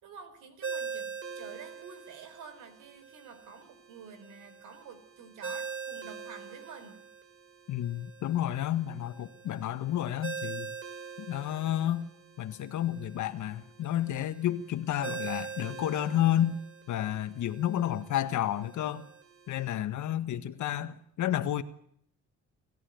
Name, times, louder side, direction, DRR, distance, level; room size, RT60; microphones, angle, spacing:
voice 1, 0.0-7.0, right 6 dB, 85° right, 10 dB, 4.4 m, -49 dB
Ringtone, 0.6-19.8, right 5 dB, 45° right, 3.1 m, -43 dB
voice 2, 7.7-10.7 11.2-12.1 12.4-16.6 16.9-19.1 19.5-21.6, left 11 dB, 75° left, 11 dB, 1.6 m, -31 dB
28.0 x 14.0 x 9.4 m, 0.68 s
cardioid pair, 90°, 30 cm